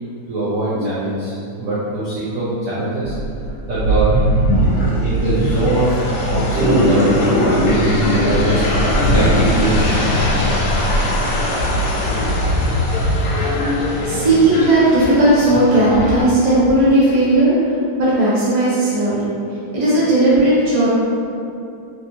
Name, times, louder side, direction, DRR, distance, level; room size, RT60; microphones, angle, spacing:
voice 1, 0.3-3.2 3.7-4.1 5.0-6.0 6.3-8.7 9.1-10.1, right 2 dB, 70° right, -9 dB, 0.8 m, -21 dB
sound 1, 3.0-16.2, equal, 70° left, 1.1 m, -19 dB
voice 2, 14.0-19.3 19.7-20.9, right 1 dB, 30° right, -10 dB, 0.7 m, -15 dB
3.2 x 2.6 x 2.7 m, 2.6 s
omnidirectional pair, 2.0 m